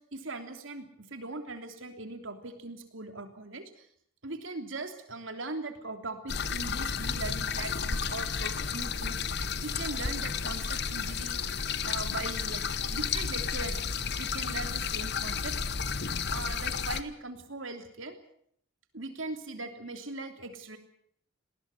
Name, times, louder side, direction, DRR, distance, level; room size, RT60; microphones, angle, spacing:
voice 1, 0.1-3.9 4.2-11.4 11.8-13.8 14.2-15.5 16.3-18.2 18.9-20.8, right 2 dB, 70° right, 6 dB, 3.2 m, -40 dB
sound 1, 6.3-17.0, left 6 dB, 55° left, 1.1 m, -32 dB
20.0 x 18.5 x 8.4 m, 0.68 s
head